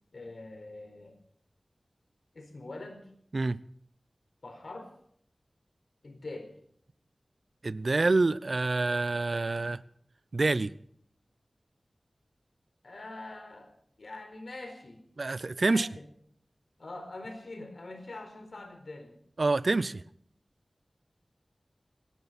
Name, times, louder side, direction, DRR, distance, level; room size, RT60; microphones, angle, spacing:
voice 1, 0.1-1.1 2.3-3.1 4.4-4.9 6.0-6.5 12.8-13.7 14.0-15.0 15.6-16.0 16.8-19.2, left 2 dB, 75° left, 6 dB, 4.5 m, -43 dB
voice 2, 7.6-9.8 10.3-10.7 15.2-15.9 19.4-20.0, right 3 dB, 60° right, 17 dB, 0.6 m, -27 dB
18.0 x 17.5 x 4.2 m, 0.64 s
wide cardioid pair, 80°, 0 cm